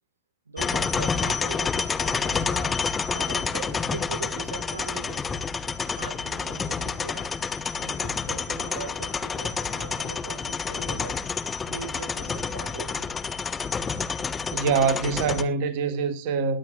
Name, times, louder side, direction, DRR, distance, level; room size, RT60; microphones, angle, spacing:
voice 1, 0.5-2.7 3.1-5.4 6.0-7.3 7.7-13.1, right 4 dB, 85° right, 4.7 m, -40 dB
sound 1, 0.6-15.4, left 5 dB, 20° left, 0.9 m, -29 dB
voice 2, 14.5-16.6, right 5 dB, 55° right, 1.5 m, -24 dB
22.0 x 10.5 x 2.4 m
figure-of-eight pair, 95°, 0 cm